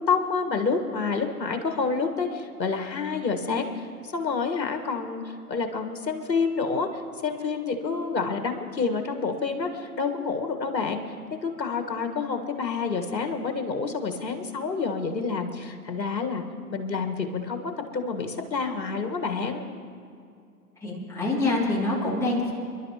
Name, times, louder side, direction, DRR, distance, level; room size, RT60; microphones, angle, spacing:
voice 1, 0.1-6.9 7.2-11.0 11.4-16.4 16.7-19.7, left 4 dB, 90° left, 5 dB, 1.7 m, -28 dB
voice 2, 20.8-22.5, left 2 dB, 5° left, -6 dB, 2.7 m, -25 dB
28.5 x 11.5 x 3.0 m, 2.4 s
hypercardioid pair, 130°, 50 cm